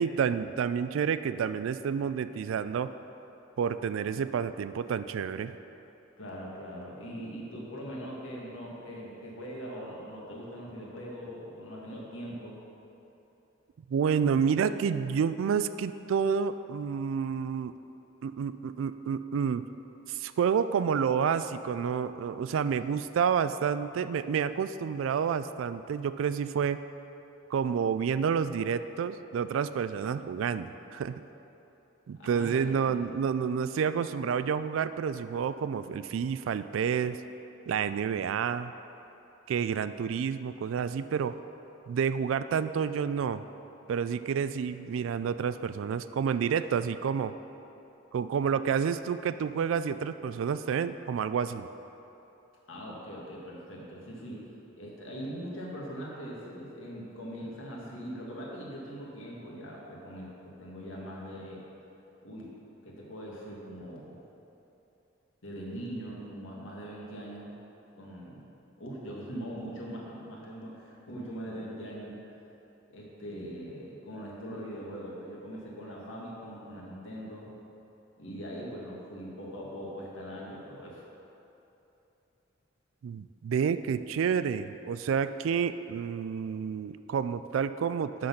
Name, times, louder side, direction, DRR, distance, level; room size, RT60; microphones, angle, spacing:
voice 1, 0.0-2.9 3.6-5.5 13.9-17.7 18.2-19.6 20.1-26.8 27.5-31.2 32.1-37.2 37.7-38.7 39.5-41.4 41.9-43.4 43.9-47.3 48.1-51.7 83.0-88.3, right 7 dB, 85° right, 12 dB, 0.3 m, -29 dB
voice 2, 6.2-12.6 32.1-33.0 52.7-54.5 54.7-61.6 62.2-62.5 62.8-64.2 65.4-67.6 67.9-68.5 68.8-72.1 72.9-77.5 78.2-81.0, equal, 85° left, -4 dB, 1.7 m, -41 dB
11.5 x 4.0 x 5.8 m, 3.0 s
head